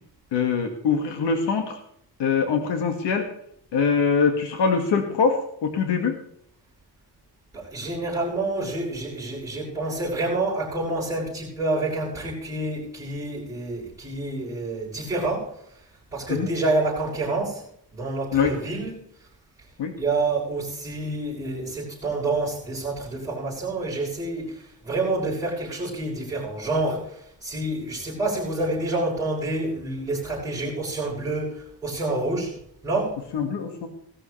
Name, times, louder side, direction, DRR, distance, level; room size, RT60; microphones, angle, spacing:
voice 1, 0.3-1.8 2.2-3.3 3.7-6.1 16.3-16.5 18.3-18.5 19.8-19.9 33.3-33.9, left 5 dB, 80° left, 4 dB, 2.1 m, -23 dB
voice 2, 7.5-15.5 16.1-17.6 17.9-19.0 20.0-32.6 32.8-33.2, right 2 dB, 5° right, -12 dB, 6.9 m, -28 dB
18.5 x 13.5 x 3.3 m, 0.68 s
cardioid pair, 145°, 41 cm